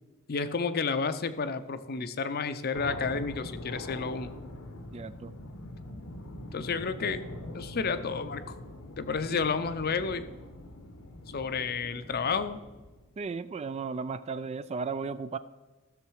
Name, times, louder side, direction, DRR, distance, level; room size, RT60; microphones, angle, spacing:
voice 1, 0.3-4.3 6.5-7.2 7.5-8.6 9.0-10.2 11.3-12.6, left 5 dB, 45° left, 11 dB, 0.6 m, -31 dB
sound 1, 2.7-13.1, left 1 dB, 80° left, 1.1 m, -43 dB
voice 2, 4.9-5.3 9.3-9.4 13.2-15.4, right 5 dB, 30° right, 14 dB, 0.3 m, -35 dB
14.5 x 6.6 x 4.7 m, 1.2 s
head